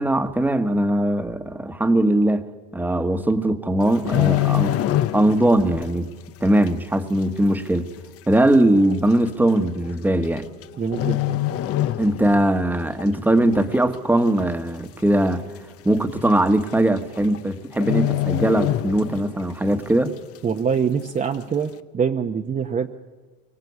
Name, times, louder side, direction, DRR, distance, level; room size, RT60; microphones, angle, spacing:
voice 1, 0.0-2.5 2.7-4.8 5.1-6.1 6.4-7.9 8.3-10.5 12.0-15.4 15.8-20.1, right 1 dB, 5° right, 8 dB, 1.5 m, -20 dB
sound 1, 3.8-5.6 5.8-6.1 6.7-6.8 7.7-7.8 8.0-8.1 8.9-9.1 10.2-10.6 10.9-12.5 12.8-13.0 13.5-14.1 14.4-14.5 14.7-14.8 15.2-15.3 16.3-16.4 16.7-17.0 17.2-17.4 17.8-19.4 19.8-19.9, left 14 dB, 40° left, 0.9 m, -24 dB
voice 2, 10.8-11.4 20.4-22.9, right 6 dB, 20° right, 3 dB, 1.1 m, -24 dB
24.0 x 23.5 x 8.3 m, 1.3 s
supercardioid pair, 115°, 37 cm